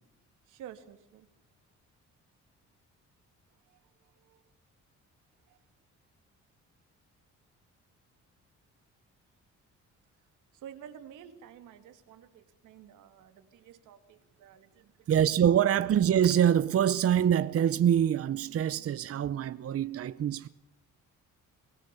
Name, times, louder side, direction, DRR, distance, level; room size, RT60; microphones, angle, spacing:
voice 1, 0.5-1.3 3.5-4.4 5.5-5.6 10.5-15.1, right 9 dB, 90° right, 2.6 m, -51 dB
voice 2, 15.1-20.5, right 9 dB, 50° right, 0.8 m, -25 dB
24.0 x 17.0 x 7.0 m
cardioid pair, 90°, 30 cm